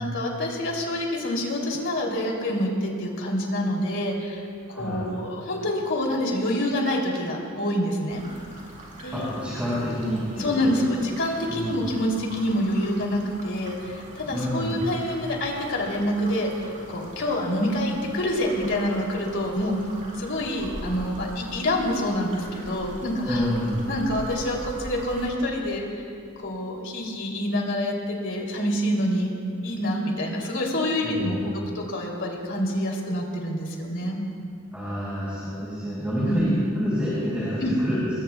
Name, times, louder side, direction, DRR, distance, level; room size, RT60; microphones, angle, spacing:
voice 1, 0.0-4.4 4.7-8.2 9.0-9.3 10.4-19.7 20.2-23.4 23.9-26.0 26.4-29.4 29.6-34.2 36.2-36.6 37.6-37.7, left 1 dB, 60° left, -1 dB, 3.1 m, -27 dB
voice 2, 4.7-5.0 9.1-11.0 11.5-11.8 14.3-14.8 23.2-23.8 31.0-31.6 34.7-38.2, equal, 5° right, -9 dB, 5.0 m, -28 dB
sound 1, 8.1-25.3, right 1 dB, 40° right, 4.6 m, -42 dB
27.0 x 22.0 x 2.3 m, 2.3 s
head